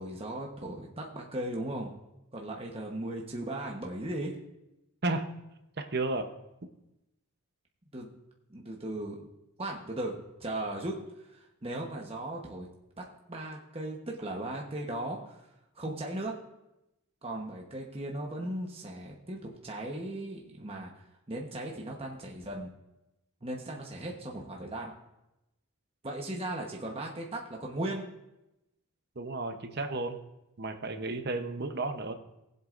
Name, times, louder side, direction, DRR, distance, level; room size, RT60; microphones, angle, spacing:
voice 1, 0.0-1.9 2.3-4.3 7.9-8.1 8.5-9.3 9.6-10.9 11.3-12.7 13.0-15.4 15.8-16.3 17.2-22.7 23.4-24.9 26.0-28.0, right 1 dB, 25° right, -1 dB, 1.1 m, -37 dB
voice 2, 5.8-6.3 29.2-30.2 30.6-32.1, right 2 dB, 45° right, 7 dB, 0.9 m, -32 dB
19.0 x 8.0 x 2.6 m, 0.91 s
head